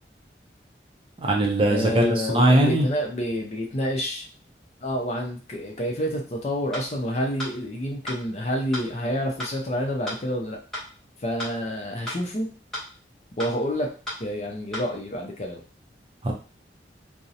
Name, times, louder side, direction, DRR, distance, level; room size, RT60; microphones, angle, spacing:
voice 1, 1.2-2.9 16.2-16.3, right 1 dB, 30° right, 0 dB, 0.4 m, -20 dB
voice 2, 1.7-4.2 4.8-10.6 11.2-12.5 13.4-13.9 14.2-15.6, equal, 40° left, 1 dB, 0.5 m, -28 dB
sound 1, 6.7-6.9 7.4-7.5 8.1-8.2 8.7-8.9 9.4-9.5 10.1-10.2 10.7-10.9 11.4-11.5 12.1-12.2 12.7-12.9 13.4-13.5 14.1-14.2 14.7-14.9, left 1 dB, ahead, 0.8 m, -33 dB
2.5 x 2.0 x 2.7 m, 0.37 s
head